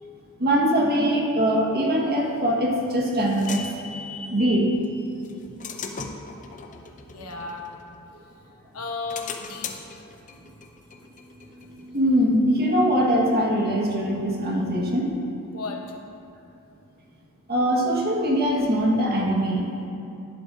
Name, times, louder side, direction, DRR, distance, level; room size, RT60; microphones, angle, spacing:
voice 1, 0.4-3.6 4.3-4.8 11.9-15.2 17.5-19.9, equal, 45° right, -2 dB, 1.7 m, -22 dB
sound 1, 2.5-4.7 5.2-8.3 8.8-12.2, left 4 dB, 35° left, 0.6 m, -39 dB
voice 2, 7.1-7.7 8.7-10.1 15.5-15.8, left 4 dB, 85° left, 2 dB, 1.1 m, -34 dB
sound 2, 10.7-15.1, left 3 dB, 25° right, 1.2 m, -40 dB
11.5 x 11.0 x 2.7 m, 2.6 s
head